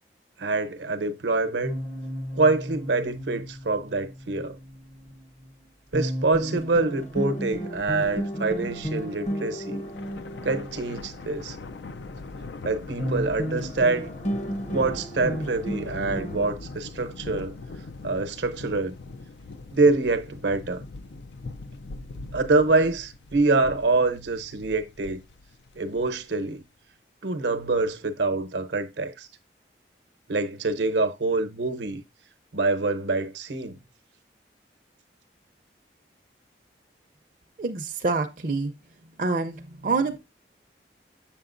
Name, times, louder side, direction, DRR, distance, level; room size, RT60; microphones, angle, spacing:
voice 1, 0.4-1.8 2.3-4.6 5.9-9.8 10.4-11.6 12.6-14.1 14.7-17.6 18.0-18.9 19.7-20.8 22.3-25.2 25.8-26.6 27.2-29.3 30.3-32.0 32.5-33.8, right 3 dB, 80° right, 0.8 m, -25 dB
sound 1, 1.6-5.5 5.9-12.7 13.0-16.5, equal, 40° left, 0.8 m, -34 dB
Thunder, 9.8-26.4, left 3 dB, 80° left, 0.5 m, -41 dB
voice 2, 37.6-38.7 39.2-40.2, right 3 dB, 50° right, 0.5 m, -26 dB
7.5 x 6.8 x 2.5 m
head